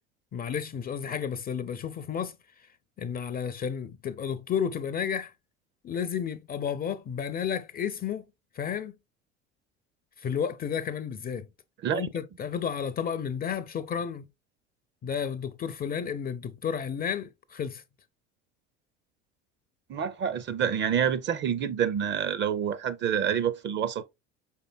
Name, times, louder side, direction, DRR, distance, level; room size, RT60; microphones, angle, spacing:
voice 1, 0.3-2.7 3.0-5.3 5.8-8.2 8.5-9.0 10.2-11.5 11.9-14.3 15.0-17.8, left 7 dB, 25° left, 0.4 m, -32 dB
voice 2, 19.9-24.0, right 8 dB, 30° right, 0.5 m, -27 dB
5.1 x 4.4 x 2.2 m
hypercardioid pair, 70°, 35 cm